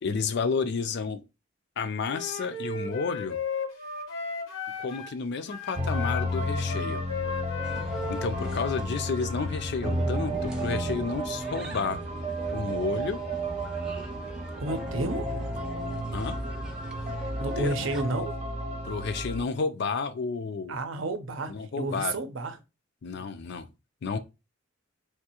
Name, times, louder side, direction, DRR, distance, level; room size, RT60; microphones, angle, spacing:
voice 1, 0.0-1.2 1.8-3.4 4.8-7.0 8.1-12.0 12.5-13.2 16.1-16.4 17.6-17.9 18.8-20.8 21.5-22.2 23.0-23.7 24.0-24.2, left 5 dB, 60° left, 0.4 m, -31 dB
Wind instrument woodwind instrument, 2.1-5.2 5.5-8.8, left 4 dB, 85° left, 0.9 m, -35 dB
sound 1, 5.7-19.4, equal, 35° right, 0.8 m, -32 dB
sound 2, 7.6-18.0, equal, 5° right, 0.5 m, -42 dB
voice 2, 14.6-15.3 17.4-18.4 20.7-22.6, right 2 dB, 75° right, 0.6 m, -31 dB
3.5 x 2.7 x 2.8 m
head